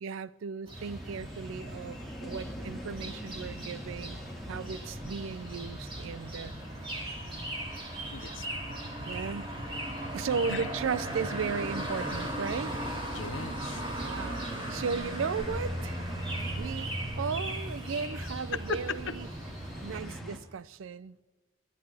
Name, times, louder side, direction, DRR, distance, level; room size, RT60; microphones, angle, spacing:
voice 1, 0.0-6.6 9.0-9.5 10.1-12.8 14.0-14.4 14.7-16.0 16.6-19.3 19.8-21.2, right 5 dB, 85° right, 0.4 m, -35 dB
sound 1, 0.6-20.0, right 1 dB, 25° right, 2.5 m, -38 dB
sound 2, 0.7-20.4, equal, ahead, 1.7 m, -45 dB
voice 2, 8.1-8.5 10.5-10.7 13.1-13.8 18.2-18.3 18.7-18.8 19.9-20.2, left 5 dB, 75° left, 0.7 m, -39 dB
sound 3, 8.3-16.5, right 2 dB, 65° right, 0.9 m, -48 dB
22.0 x 11.5 x 3.4 m
head